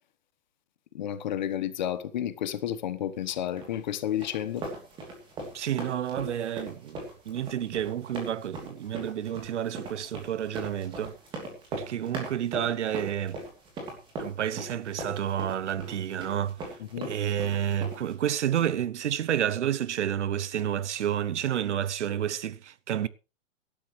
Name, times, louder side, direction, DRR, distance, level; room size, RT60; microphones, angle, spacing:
voice 1, 0.9-4.6 16.9-17.1, left 11 dB, 35° left, 1.2 m, -31 dB
sound 1, 3.6-18.1, right 2 dB, 10° right, 3.0 m, -40 dB
voice 2, 5.5-7.0 7.3-11.2 11.7-13.4 14.2-16.6 17.0-23.1, right 10 dB, 60° right, 0.9 m, -30 dB
17.0 x 12.0 x 3.2 m
hypercardioid pair, 170°, 39 cm